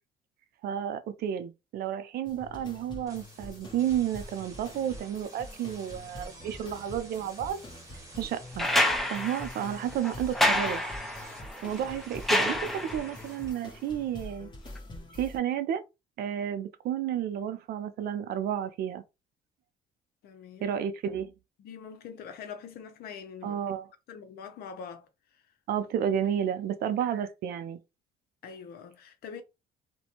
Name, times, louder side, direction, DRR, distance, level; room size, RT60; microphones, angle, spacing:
voice 1, 0.6-7.6 8.2-8.7 9.1-10.8 11.6-14.5 15.2-15.8 16.2-19.0 20.6-21.3 23.4-23.9 25.7-27.8, right 9 dB, 65° right, 0.5 m, -31 dB
sound 1, 2.2-15.4, left 1 dB, 25° left, 1.0 m, -46 dB
sound 2, 3.1-13.5, right 2 dB, 20° right, 1.0 m, -51 dB
sound 3, 8.6-13.2 14.8-14.9, left 1 dB, ahead, 0.5 m, -28 dB
voice 2, 20.2-20.7 21.6-23.6 24.1-25.4 28.4-29.4, left 6 dB, 65° left, 0.6 m, -44 dB
2.5 x 2.2 x 2.8 m
cardioid pair, 110°, 17 cm